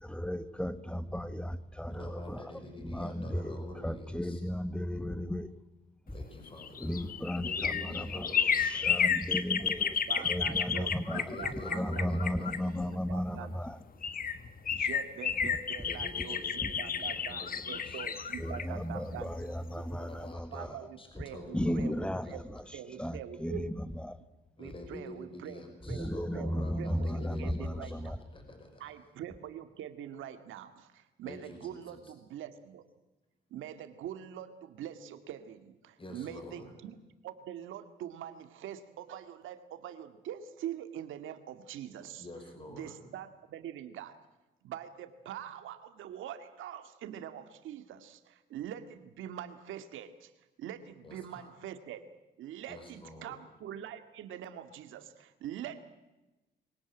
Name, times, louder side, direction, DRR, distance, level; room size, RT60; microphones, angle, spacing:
voice 1, 0.0-2.4 2.9-3.6 3.8-5.5 6.8-8.1 8.7-10.0 10.2-11.2 11.7-13.7 16.6-16.7 18.4-20.7 21.5-22.3 23.0-23.7 24.0-24.2 25.9-28.2, equal, 5° left, 14 dB, 1.4 m, -35 dB
voice 2, 1.9-4.4 6.1-9.2 11.1-12.6 15.4-15.5 15.8-18.1 19.9-21.8 22.2-22.3 24.6-29.0 31.2-32.1 36.0-36.7 42.2-43.1 51.0-51.5 52.7-53.4, left 1 dB, 25° left, 5 dB, 5.7 m, -47 dB
sound 1, 6.3-13.2 13.7-13.8 14.0-19.8 20.1-20.2, left 7 dB, 45° left, 1.5 m, -32 dB
voice 3, 9.6-13.7 14.7-19.4 19.8-19.9 20.5-22.4 22.7-23.7 24.6-25.6 25.9-28.1 28.8-32.9 33.5-37.0 37.2-42.3 42.7-44.2 44.6-50.3 50.6-52.1 52.4-55.8, right 10 dB, 85° right, 10 dB, 2.1 m, -44 dB
24.0 x 18.0 x 9.0 m, 1.0 s
cardioid pair, 90°, 20 cm